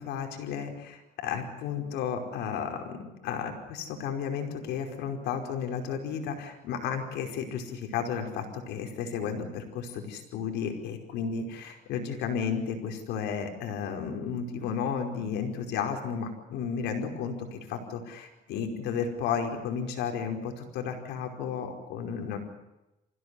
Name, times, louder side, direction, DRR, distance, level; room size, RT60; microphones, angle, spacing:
voice 1, 0.0-3.0 3.2-22.4, left 7 dB, 85° left, 4 dB, 5.1 m, -33 dB
25.5 x 16.5 x 9.9 m, 0.97 s
cardioid pair, 110°, 17 cm